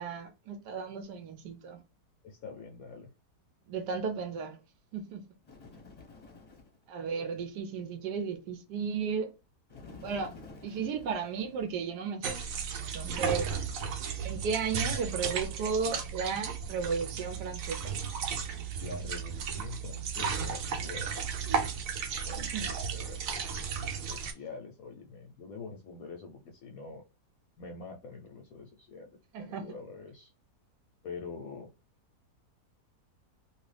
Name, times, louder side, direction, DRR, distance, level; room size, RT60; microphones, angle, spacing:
voice 1, 0.0-1.8 3.7-4.6 4.9-5.2 6.9-9.3 10.0-10.3 10.6-12.3 12.8-13.6 14.2-18.0 21.5-21.7 22.4-22.7 29.3-29.6, right 6 dB, 80° right, 1.2 m, -34 dB
voice 2, 2.2-3.1 18.8-21.3 22.2-23.5 24.0-27.0 27.6-30.3 31.0-31.7, left 4 dB, 70° left, 1.0 m, -45 dB
Bird, 5.4-6.8 9.7-12.2, left 3 dB, 30° left, 0.8 m, -51 dB
sound 1, 12.2-24.3, right 6 dB, 65° right, 0.9 m, -34 dB
2.9 x 2.6 x 3.2 m
omnidirectional pair, 1.8 m